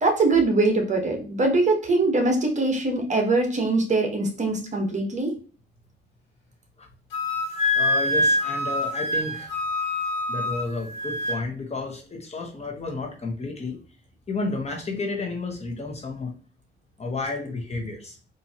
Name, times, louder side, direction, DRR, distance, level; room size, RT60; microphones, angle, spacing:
voice 1, 0.0-5.3, right 2 dB, 35° right, 3 dB, 1.1 m, -22 dB
Wind instrument woodwind instrument, 7.1-11.4, left 1 dB, 80° left, 1.8 m, -25 dB
voice 2, 7.7-9.5 10.3-13.8 14.3-16.3 17.0-18.2, left 3 dB, 30° left, 2 dB, 1.1 m, -31 dB
4.3 x 2.7 x 2.8 m, 0.38 s
cardioid pair, 90°, 20 cm